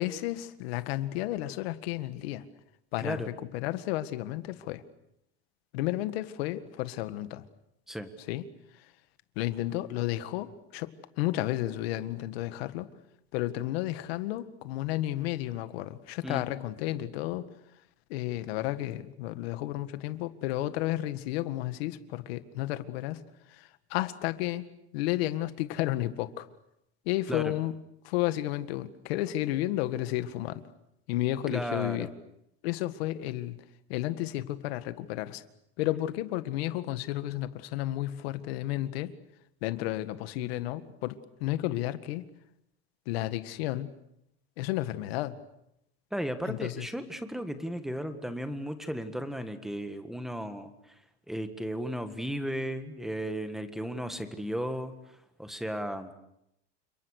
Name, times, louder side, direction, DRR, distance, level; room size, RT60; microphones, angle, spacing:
voice 1, 0.0-2.5 2.9-4.8 5.7-7.4 8.3-8.4 9.4-10.9 11.2-12.9 13.3-17.5 18.1-23.2 23.5-24.6 24.9-26.5 27.1-27.7 28.0-30.6 31.1-32.1 32.6-33.6 33.9-35.4 35.8-39.1 39.6-42.2 43.1-43.9 44.6-45.3 46.5-46.9, left 15 dB, 70° left, 11 dB, 1.9 m, -32 dB
voice 2, 3.0-3.3 7.9-8.1 16.2-16.4 27.3-27.5 31.5-32.1 40.4-40.5 46.1-50.9 51.3-56.1, equal, ahead, 8 dB, 1.7 m, -35 dB
30.0 x 26.5 x 6.6 m, 0.81 s
supercardioid pair, 165°, 32 cm